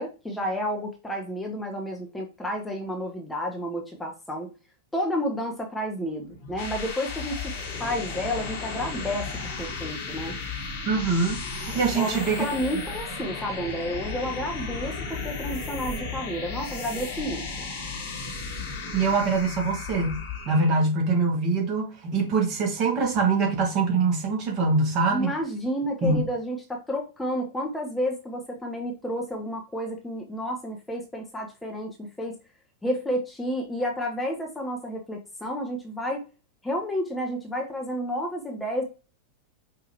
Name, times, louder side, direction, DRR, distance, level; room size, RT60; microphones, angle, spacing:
voice 1, 0.0-4.5 4.9-7.5 7.8-9.3 9.6-10.4 11.9-17.5 25.1-32.3 32.8-36.3 36.6-38.8, equal, 10° left, 0.9 m, -31 dB
sound 1, 6.3-20.8, left 4 dB, 45° left, 1.3 m, -34 dB
voice 2, 10.9-12.4 18.9-20.2 20.5-25.3 26.0-26.2, right 4 dB, 35° right, 1.7 m, -24 dB
5.5 x 2.9 x 3.1 m
figure-of-eight pair, 90°, 0 cm